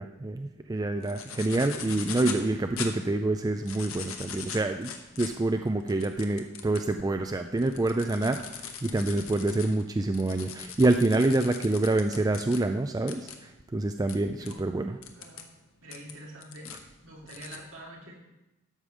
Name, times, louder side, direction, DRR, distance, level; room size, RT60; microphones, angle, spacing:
voice 1, 0.0-4.9 5.2-15.0, right 2 dB, 15° right, 6 dB, 0.3 m, -27 dB
sound 1, 1.0-2.4 2.8-2.9 3.5-6.9 7.4-12.6 13.1-13.3 14.1-14.2 14.4-14.5 15.0-15.4 15.9-16.8 17.3-17.6, left 7 dB, 70° left, 1.1 m, -40 dB
voice 2, 15.1-15.5 15.8-16.7 17.0-18.1, right 1 dB, 65° right, -2 dB, 2.9 m, -45 dB
12.5 x 5.1 x 6.3 m, 0.95 s
head